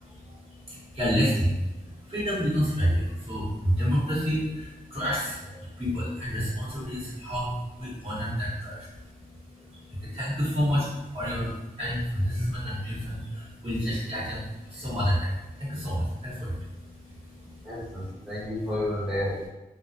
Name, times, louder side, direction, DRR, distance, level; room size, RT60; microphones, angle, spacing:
voice 1, 0.0-17.7 18.2-18.3, equal, 40° right, -9 dB, 1.2 m, -29 dB
voice 2, 17.6-19.5, left 1 dB, 5° right, -9 dB, 1.0 m, -31 dB
2.3 x 2.1 x 2.5 m, 1.0 s
wide cardioid pair, 45°, 16 cm